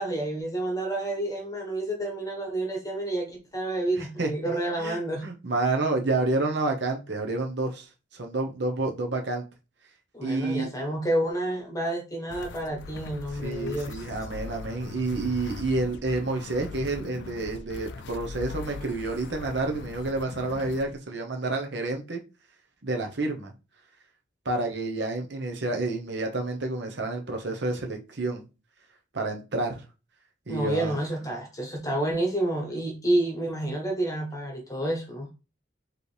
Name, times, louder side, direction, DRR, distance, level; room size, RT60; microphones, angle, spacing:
voice 1, 0.0-5.2 10.1-14.0 30.5-35.3, right 1 dB, 15° left, 1.2 m, -29 dB
voice 2, 4.0-4.3 4.8-7.9 8.1-9.4 10.2-10.7 13.4-22.2 22.8-23.5 24.4-28.4 29.1-29.8 30.5-30.9, right 2 dB, 65° right, 0.9 m, -29 dB
sound 1, 12.3-21.0, left 4 dB, 65° left, 0.4 m, -40 dB
4.9 x 3.2 x 3.3 m
head